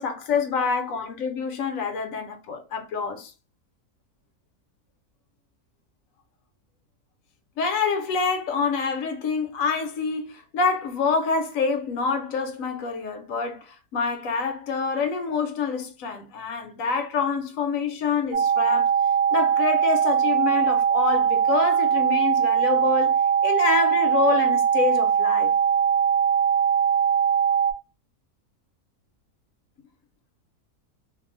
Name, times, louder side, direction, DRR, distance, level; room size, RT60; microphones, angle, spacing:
voice 1, 0.0-3.3 7.6-18.9 19.3-25.5, left 5 dB, 70° left, 1.0 m, -26 dB
sound 1, 18.3-27.7, right 8 dB, 75° right, 1.1 m, -21 dB
2.5 x 2.4 x 3.0 m
omnidirectional pair, 1.6 m